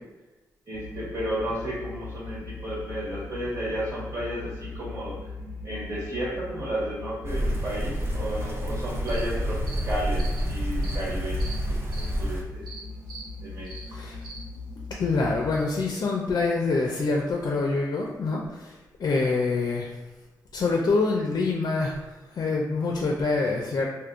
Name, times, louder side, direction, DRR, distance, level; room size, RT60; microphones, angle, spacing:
sound 1, 0.7-15.6, left 3 dB, 10° right, 1.2 m, -39 dB
voice 1, 0.7-5.3 5.6-9.6 9.8-12.6 13.4-14.0, right 1 dB, 50° right, -8 dB, 1.4 m, -33 dB
sound 2, 7.2-12.4, equal, 35° right, 0.7 m, -28 dB
sound 3, 9.1-9.2 9.7-9.8 10.2-10.4 10.8-11.0 11.4-11.5 11.9-12.1 12.7-12.8 13.1-13.2 13.6-13.8 14.2-14.4, right 4 dB, 75° right, 0.8 m, -42 dB
voice 2, 13.9-14.2 15.0-19.9 20.5-22.0 22.3-23.9, left 3 dB, 60° left, -1 dB, 0.4 m, -26 dB
3.6 x 2.6 x 2.5 m, 1.1 s
cardioid pair, 55°, 7 cm